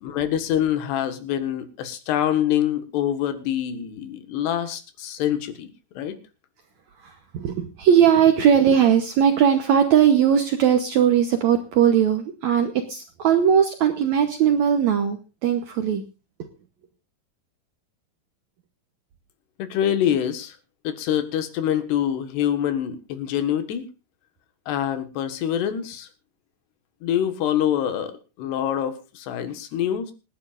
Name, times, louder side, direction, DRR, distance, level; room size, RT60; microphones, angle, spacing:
voice 1, 0.0-5.7 6.0-6.2 19.6-20.6 20.9-23.9 24.7-26.1 27.0-30.1, left 10 dB, 80° left, 9 dB, 3.6 m, -25 dB
voice 2, 7.0-16.0 16.4-16.5, right 8 dB, 85° right, 6 dB, 1.6 m, -19 dB
26.5 x 10.5 x 2.5 m, 0.31 s
omnidirectional pair, 4.7 m